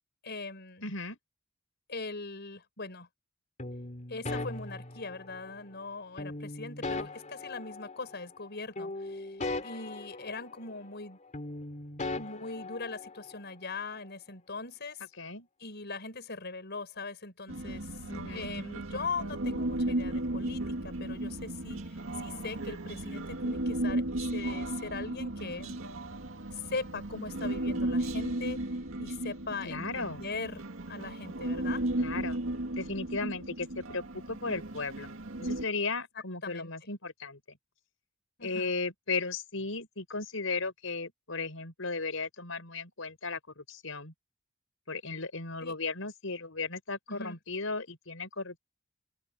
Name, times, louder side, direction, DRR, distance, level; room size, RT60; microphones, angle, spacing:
voice 1, 0.2-0.9 1.9-3.1 4.1-9.4 9.6-11.2 12.1-15.0 15.6-17.9 18.3-21.8 22.2-24.0 24.3-25.8 26.5-28.6 29.0-31.8 36.4-36.7 38.4-38.7 45.6-45.8 47.1-47.4, left 3 dB, 55° left, 6.1 m, -40 dB
voice 2, 0.8-1.2 15.2-15.5 18.0-18.5 29.7-30.2 32.0-32.4 32.8-35.1 35.4-37.4 38.4-44.1 44.9-48.6, left 3 dB, 80° left, 5.3 m, -36 dB
sound 1, 3.6-5.6 6.2-8.5 8.8-11.1 11.3-13.4, left 2 dB, 40° left, 3.5 m, -39 dB
Human voice, 17.5-35.6, right 1 dB, 90° right, 2.0 m, -35 dB
open air
head